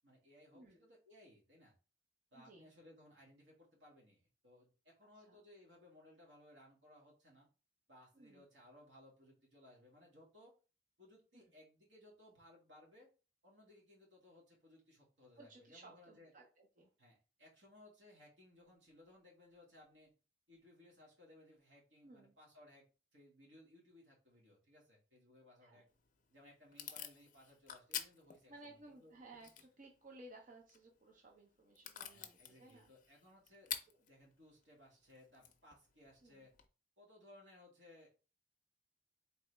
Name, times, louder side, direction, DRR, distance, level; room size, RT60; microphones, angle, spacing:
voice 1, 0.0-1.8 2.3-7.5 7.9-10.5 11.0-13.1 13.4-16.3 17.0-20.1 20.5-22.9 23.1-25.9 26.3-29.1 32.1-33.7 34.1-36.5 37.0-38.2, left 1 dB, 85° right, -2 dB, 2.0 m, -63 dB
voice 2, 0.5-0.9 2.3-2.7 5.2-5.4 8.1-8.4 11.3-11.5 15.4-16.9 22.0-22.3 25.6-25.8 28.5-32.9 33.9-34.0 36.2-36.5, right 2 dB, 45° right, 0 dB, 0.7 m, -59 dB
Packing tape duct tape / Tearing, 25.9-36.7, left 9 dB, 45° left, 0.5 m, -51 dB
3.9 x 3.3 x 3.3 m, 0.33 s
head